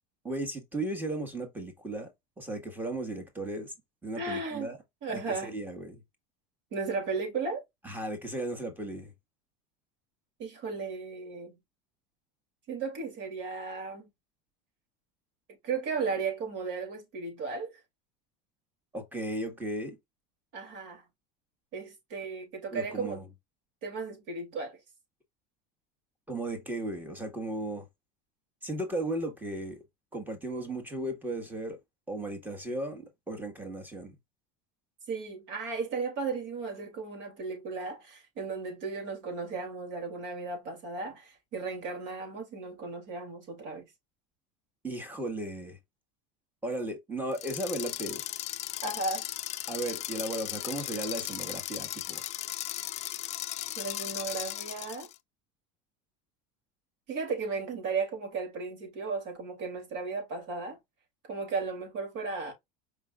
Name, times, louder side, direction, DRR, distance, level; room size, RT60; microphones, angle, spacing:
voice 1, 0.2-2.1 2.4-3.7 4.0-4.8 5.1-6.0 7.8-9.1 18.9-20.0 22.7-23.3 26.3-27.9 28.6-29.8 30.1-31.8 32.1-34.1 44.8-45.8 46.6-48.2 49.7-52.2, right 1 dB, 10° right, 1.6 m, -35 dB
voice 2, 4.2-4.7 5.0-5.5 6.7-7.6 10.4-11.6 12.7-14.1 15.6-17.8 20.5-21.0 21.7-23.2 23.8-24.8 35.1-43.8 48.8-49.3 53.8-55.1 57.1-60.8 61.3-62.5, right 4 dB, 60° right, 2.9 m, -35 dB
sound 1, 47.3-55.1, left 14 dB, 35° left, 0.4 m, -37 dB
5.0 x 3.6 x 2.4 m
supercardioid pair, 130°, 20 cm